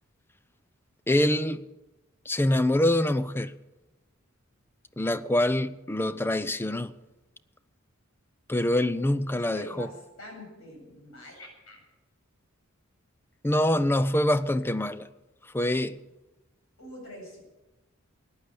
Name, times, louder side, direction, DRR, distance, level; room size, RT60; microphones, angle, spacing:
voice 1, 1.1-1.7 2.3-3.5 5.0-6.9 8.5-9.9 13.4-15.1 15.5-16.0, left 1 dB, 10° left, 0.5 m, -25 dB
voice 2, 9.3-11.8 16.8-17.4, equal, 75° left, 7.8 m, -44 dB
15.5 x 10.5 x 8.0 m
head